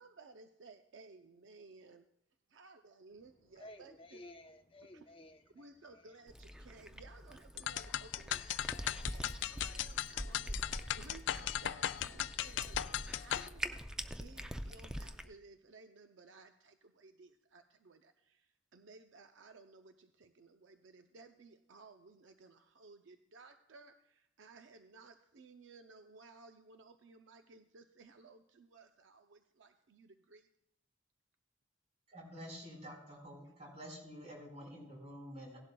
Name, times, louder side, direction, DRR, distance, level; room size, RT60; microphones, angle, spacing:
voice 1, 0.0-2.1 2.5-4.2 4.9-5.1 5.5-13.8 14.2-30.5, right 3 dB, 75° right, 0.5 m, -58 dB
voice 2, 3.6-5.7 5.9-6.0, left 1 dB, 30° left, 0.8 m, -54 dB
Cat, 6.3-15.3, equal, 5° right, 0.4 m, -45 dB
sound 1, 7.6-13.5, left 11 dB, 70° left, 0.3 m, -37 dB
voice 3, 32.1-35.6, equal, 35° right, 4.4 m, -49 dB
17.5 x 11.5 x 2.3 m
head